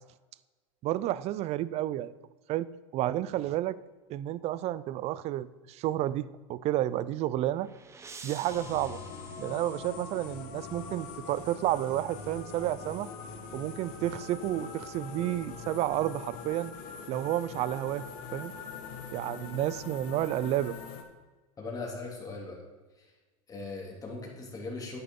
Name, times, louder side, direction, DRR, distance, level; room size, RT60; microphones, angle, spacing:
voice 1, 0.8-2.1 2.5-2.7 2.9-3.8 4.1-7.7 8.2-9.0 9.4-13.1 13.5-16.7 17.1-18.0 18.3-18.5 19.1-20.7, right 13 dB, 40° right, 18 dB, 0.4 m, -31 dB
sound 1, 7.2-10.3, right 4 dB, 15° right, 0.8 m, -50 dB
sound 2, 8.5-21.0, left 5 dB, 55° left, 1.6 m, -43 dB
voice 2, 21.6-22.6 23.0-23.1 23.5-25.0, left 3 dB, 20° left, -1 dB, 2.8 m, -39 dB
9.6 x 9.6 x 3.7 m, 1.3 s
supercardioid pair, 130°, 17 cm